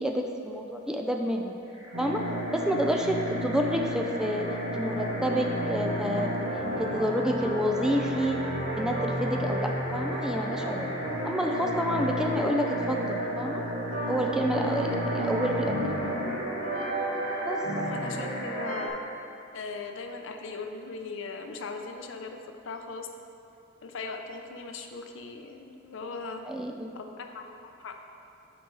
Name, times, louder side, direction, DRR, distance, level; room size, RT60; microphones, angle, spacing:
voice 1, 0.0-1.6 2.0-2.2 2.5-4.5 4.7-6.3 6.8-8.5 8.8-10.9 11.2-13.6 14.1-16.2 17.4-17.6 26.5-26.9, equal, 5° right, 2 dB, 0.4 m, -29 dB
sound 1, 1.6-19.1, left 1 dB, 20° right, 1.2 m, -42 dB
sound 2, 1.9-18.9, right 1 dB, 85° right, 1.2 m, -31 dB
voice 2, 17.7-19.0 19.5-22.4 22.6-23.1 23.8-26.4 26.9-27.9, left 4 dB, 70° left, 4 dB, 0.6 m, -39 dB
8.3 x 4.3 x 4.7 m, 2.7 s
head